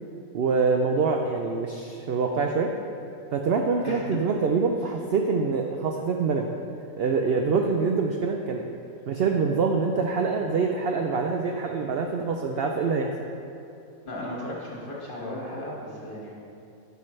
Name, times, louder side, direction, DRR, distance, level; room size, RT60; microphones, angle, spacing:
voice 1, 0.3-2.7 3.3-6.5 7.0-8.6 9.1-13.1, right 4 dB, 65° right, 3 dB, 0.6 m, -25 dB
voice 2, 14.0-16.3, left 1 dB, 35° left, -5 dB, 1.7 m, -35 dB
12.0 x 5.7 x 3.2 m, 2.7 s
omnidirectional pair, 1.5 m